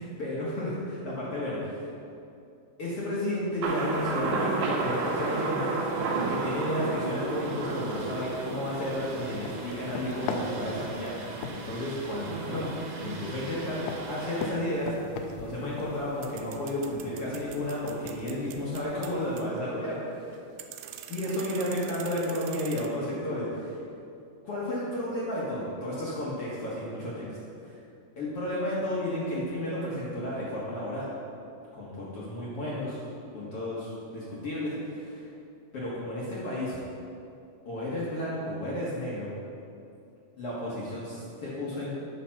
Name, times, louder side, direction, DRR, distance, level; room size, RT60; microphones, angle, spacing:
voice 1, 0.0-1.8 2.8-5.7 6.3-12.7 13.0-13.8 14.1-14.9 15.4-20.3 21.1-23.7 24.4-27.4 27.6-27.7 28.2-31.1 31.7-33.0 33.3-35.2 35.7-36.8 37.6-39.3 40.4-42.0, left 1 dB, 60° left, -7 dB, 1.5 m, -32 dB
Thunder, 3.6-14.5, right 3 dB, 70° right, 2.2 m, -33 dB
sound 1, 7.7-19.5, left 5 dB, 80° left, 2.5 m, -42 dB
sound 2, 14.7-22.9, right 10 dB, 90° right, 2.8 m, -46 dB
9.3 x 6.4 x 5.8 m, 2.6 s
omnidirectional pair, 4.8 m